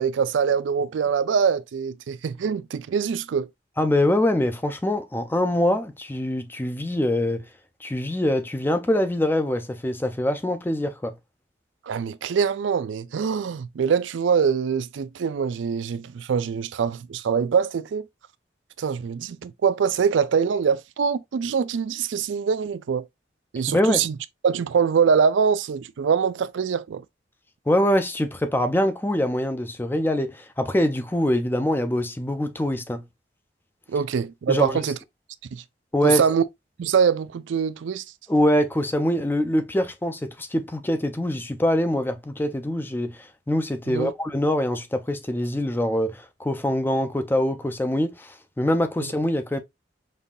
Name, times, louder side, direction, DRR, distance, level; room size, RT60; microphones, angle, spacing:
voice 1, 0.0-3.5 11.9-18.1 18.8-23.0 23.5-24.2 24.4-27.0 33.9-35.0 35.5-35.6 36.0-36.4 36.8-38.0 43.9-44.1 49.0-49.1, right 6 dB, 90° right, 0.4 m, -24 dB
voice 2, 3.8-7.5 7.8-11.1 23.7-24.1 27.7-33.0 34.5-34.8 35.9-36.2 38.3-49.6, left 1 dB, 10° left, 0.4 m, -24 dB
5.4 x 2.7 x 2.3 m
head